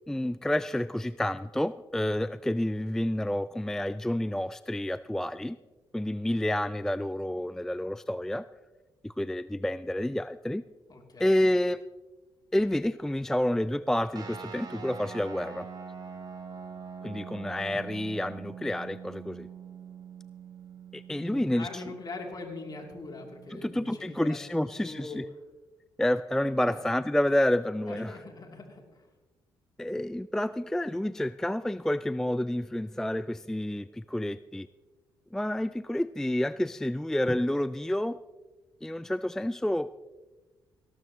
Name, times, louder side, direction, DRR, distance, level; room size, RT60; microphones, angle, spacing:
voice 1, 0.1-5.6 5.9-8.4 9.0-10.6 11.2-11.8 12.5-15.7 17.0-19.5 20.9-21.8 23.5-25.2 26.0-28.2 29.8-34.7 35.3-38.2 38.8-39.9, left 1 dB, 5° left, 15 dB, 0.3 m, -29 dB
voice 2, 10.9-11.5 21.2-25.2 26.6-26.8 27.9-29.1, left 3 dB, 45° left, 2 dB, 3.0 m, -42 dB
sound 1, 14.1-25.0, right 6 dB, 45° right, 2.6 m, -45 dB
18.0 x 12.5 x 3.1 m, 1.3 s
supercardioid pair, 60°, 9 cm